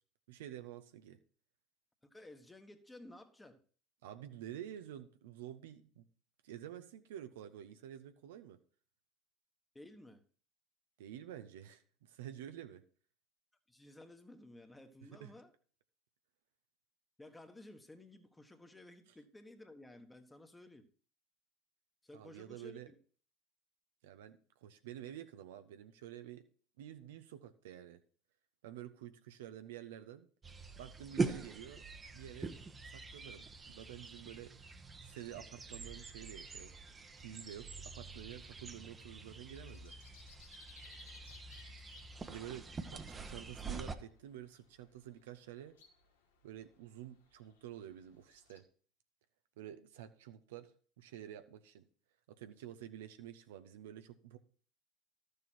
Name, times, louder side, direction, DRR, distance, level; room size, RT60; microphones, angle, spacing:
voice 1, 0.3-1.2 4.0-6.1 6.4-8.6 11.0-12.8 15.2-15.3 22.1-22.9 24.0-26.4 26.8-28.0 28.6-30.3 30.8-31.8 32.1-32.5 32.9-34.6 35.0-36.7 37.2-40.0 42.3-45.8 46.4-48.6 49.6-51.9 52.3-54.4, right 11 dB, 75° right, 0.8 m, -49 dB
voice 2, 2.1-3.6 9.7-10.2 13.7-15.5 17.2-20.9 22.0-23.0, left 1 dB, 10° left, 1.4 m, -55 dB
sound 1, 30.4-43.9, right 4 dB, 25° right, 1.0 m, -44 dB
sound 2, 35.1-48.6, left 5 dB, 85° left, 1.3 m, -65 dB
12.0 x 6.6 x 4.5 m
hypercardioid pair, 80°, 0 cm